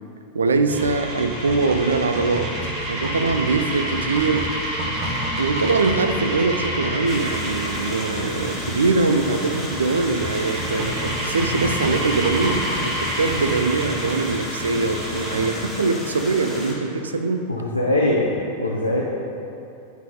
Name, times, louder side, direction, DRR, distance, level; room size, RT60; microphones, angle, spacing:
voice 1, 0.3-2.6 2.9-4.5 5.4-17.5, right 3 dB, 70° right, 8 dB, 0.4 m, -22 dB
sound 1, 0.7-15.5, right 1 dB, 40° right, 1.3 m, -28 dB
sound 2, 7.1-16.7, left 1 dB, ahead, 1.7 m, -33 dB
voice 2, 17.5-18.3 18.6-19.0, left 1 dB, 85° left, -4 dB, 0.7 m, -21 dB
11.0 x 4.0 x 3.7 m, 2.7 s
figure-of-eight pair, 90°, 0 cm